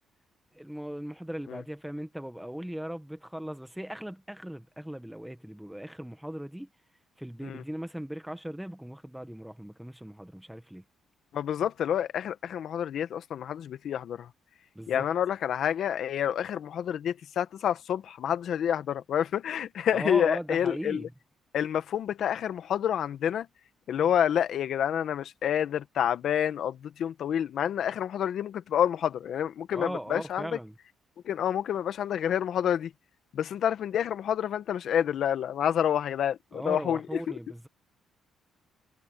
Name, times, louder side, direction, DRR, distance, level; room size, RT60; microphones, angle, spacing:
voice 1, 0.5-6.7 7.2-10.8 14.8-15.0 19.9-21.1 29.7-30.7 36.5-37.7, equal, 5° right, 1.7 m, -38 dB
voice 2, 11.3-14.3 14.9-21.1 21.5-23.5 23.9-30.6 31.2-32.9 33.3-37.0 37.3-37.4, left 9 dB, 65° left, 1.6 m, -28 dB
cardioid pair, 90°, 0 cm